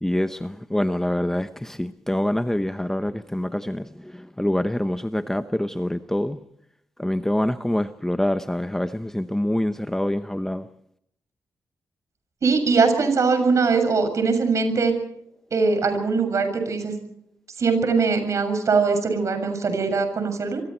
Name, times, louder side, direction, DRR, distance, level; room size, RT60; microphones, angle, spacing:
voice 1, 0.0-6.4 7.0-10.7, left 1 dB, 5° left, 0.9 m, -25 dB
voice 2, 12.4-14.9 15.5-16.9 17.6-20.6, right 4 dB, 55° right, 7.0 m, -21 dB
27.5 x 23.5 x 4.5 m
cardioid pair, 105°, 6 cm